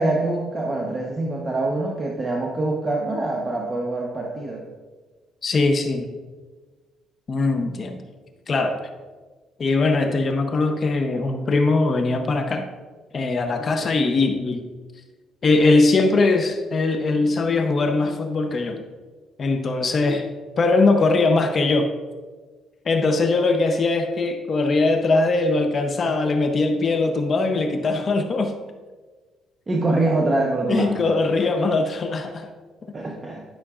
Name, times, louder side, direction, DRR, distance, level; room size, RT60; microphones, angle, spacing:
voice 1, 0.0-4.6 29.7-30.9 32.9-33.4, right 2 dB, 25° right, -1 dB, 0.9 m, -24 dB
voice 2, 5.4-6.1 7.3-8.1 8.5-8.8 9.6-12.7 13.1-14.7 15.4-18.8 19.4-20.3 20.6-21.9 22.8-28.6 30.7-32.5, left 3 dB, 40° left, 6 dB, 0.7 m, -21 dB
11.0 x 5.9 x 2.4 m, 1.4 s
cardioid pair, 105°, 0 cm